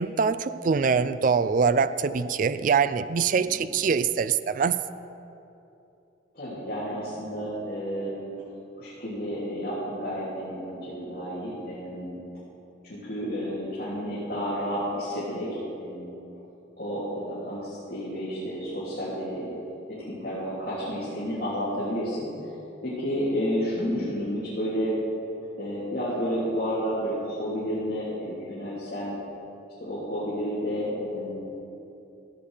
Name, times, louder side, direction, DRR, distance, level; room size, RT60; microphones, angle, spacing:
voice 1, 0.0-4.7, right 5 dB, 45° right, 14 dB, 0.3 m, -24 dB
voice 2, 6.3-8.2 8.8-12.2 12.8-15.5 15.8-16.2 16.8-19.5 20.1-22.3 22.8-25.0 25.6-29.1 29.8-31.4, equal, 50° left, -11 dB, 3.3 m, -31 dB
16.0 x 8.7 x 5.0 m, 2.9 s
head